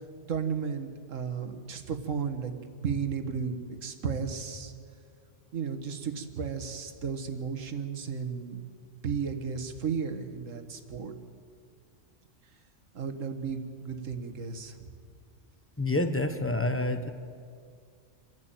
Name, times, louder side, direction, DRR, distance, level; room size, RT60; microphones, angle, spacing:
voice 1, 0.3-4.7 5.5-8.6 9.0-11.1 12.9-14.9, right 6 dB, 85° right, 8 dB, 1.8 m, -34 dB
voice 2, 15.8-17.1, left 2 dB, 10° left, 8 dB, 1.1 m, -28 dB
27.0 x 11.0 x 9.0 m, 2.2 s
omnidirectional pair, 1.3 m